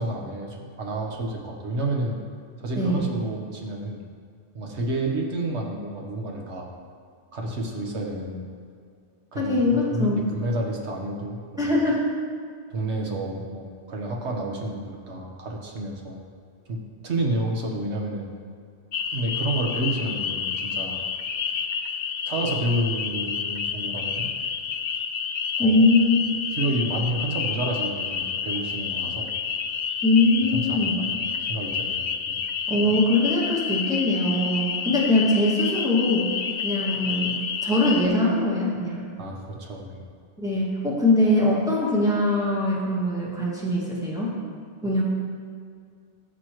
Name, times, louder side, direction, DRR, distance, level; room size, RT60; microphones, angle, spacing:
voice 1, 0.0-2.2 2.6-4.0 4.5-6.7 7.3-8.5 9.3-9.6 9.9-11.7 12.7-16.2 16.7-18.3 19.1-21.0 22.2-24.3 25.6-25.8 26.5-29.3 30.5-31.1 31.4-32.4 39.2-40.0, right 1 dB, 90° right, 0 dB, 1.5 m, -30 dB
voice 2, 2.8-3.1 9.3-10.3 11.6-12.1 25.6-26.2 30.0-31.0 32.7-36.3 36.6-37.4 37.6-39.0 40.4-44.3 44.8-45.0, left 2 dB, 5° right, -7 dB, 2.0 m, -22 dB
sound 1, 18.9-38.1, left 6 dB, 55° left, 0.5 m, -29 dB
15.5 x 6.8 x 3.1 m, 2.2 s
omnidirectional pair, 1.1 m